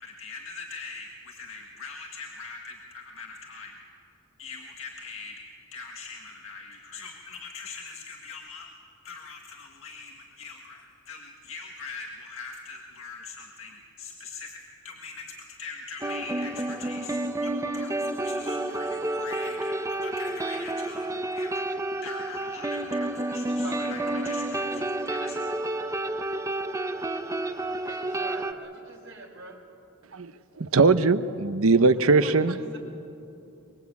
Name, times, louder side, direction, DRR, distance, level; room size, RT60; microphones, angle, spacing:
voice 1, 0.0-3.7 4.4-5.3 5.7-8.7 9.0-15.2 15.6-21.7 22.0-25.4, left 4 dB, 75° left, 1 dB, 1.8 m, -42 dB
sound 1, 16.0-28.5, right 2 dB, 15° right, 0.8 m, -30 dB
voice 2, 23.5-24.8 27.8-29.6 32.2-32.8, right 2 dB, 60° right, -1 dB, 5.3 m, -43 dB
voice 3, 30.6-32.6, right 3 dB, 80° right, 12 dB, 0.9 m, -20 dB
24.0 x 22.5 x 8.5 m, 2.8 s
head